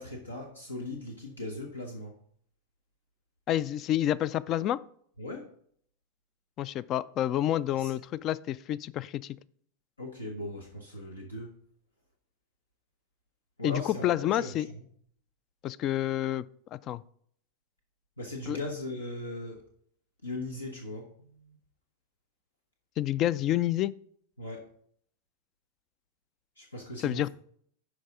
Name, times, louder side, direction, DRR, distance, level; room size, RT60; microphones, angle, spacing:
voice 1, 0.0-2.2 5.2-5.5 7.7-7.9 10.0-11.5 13.6-14.8 18.2-19.6 20.2-21.6 24.4-24.7 26.6-27.3, left 1 dB, 85° left, 2 dB, 1.0 m, -39 dB
voice 2, 3.5-4.8 6.6-9.4 13.6-14.7 15.6-16.5 16.7-17.0 18.5-18.6 23.0-23.9 27.0-27.3, left 12 dB, 40° left, 20 dB, 0.3 m, -29 dB
11.5 x 4.7 x 3.7 m, 0.63 s
figure-of-eight pair, 90°, 0 cm